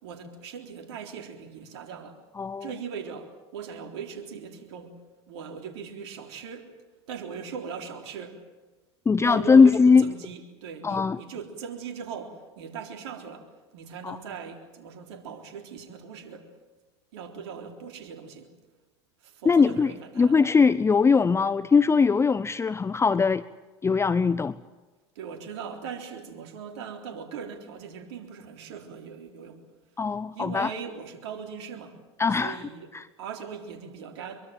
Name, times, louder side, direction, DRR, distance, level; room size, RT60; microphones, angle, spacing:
voice 1, 0.0-2.2 2.6-5.0 5.3-6.7 7.1-8.4 9.1-16.6 17.1-18.5 19.2-20.4 25.2-29.6 30.3-32.0 32.3-32.9 33.2-34.4, right 6 dB, 75° right, 4 dB, 3.8 m, -40 dB
voice 2, 2.4-2.7 9.1-10.1 10.8-11.2 14.0-14.2 19.5-19.9 20.2-23.4 23.8-24.5 30.0-30.7 32.2-32.6 32.9-33.0, left 5 dB, 20° left, 17 dB, 0.7 m, -20 dB
24.5 x 23.5 x 7.7 m, 1.2 s
hypercardioid pair, 85°, 15 cm